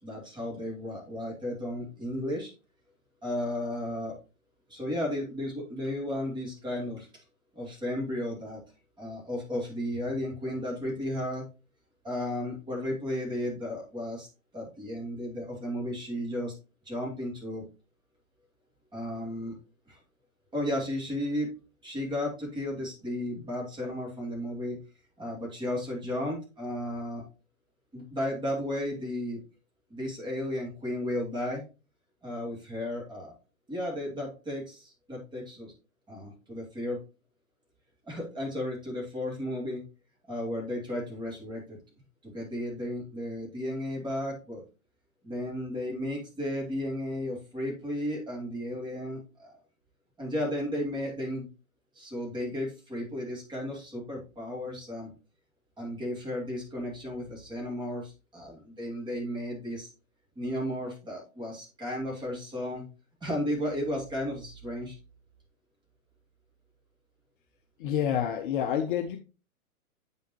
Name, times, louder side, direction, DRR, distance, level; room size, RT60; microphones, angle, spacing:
voice 1, 0.0-2.5 3.2-4.2 4.7-7.1 7.5-8.6 9.0-11.4 12.0-14.3 14.5-16.5 16.8-17.6 18.9-19.6 19.9-20.0 20.5-21.5 21.8-24.8 25.2-27.2 27.9-29.4 29.9-31.6 32.2-33.3 33.7-35.7 36.1-37.0 38.1-39.8 40.3-41.8 42.2-44.6 45.2-49.5 50.2-51.5 51.9-55.1 55.8-59.9 60.4-62.8 63.2-65.0, left 1 dB, 10° right, -2 dB, 2.6 m, -34 dB
voice 2, 67.8-69.2, left 9 dB, 35° left, 5 dB, 0.7 m, -28 dB
8.5 x 5.5 x 3.0 m, 0.31 s
hypercardioid pair, 125°, 44 cm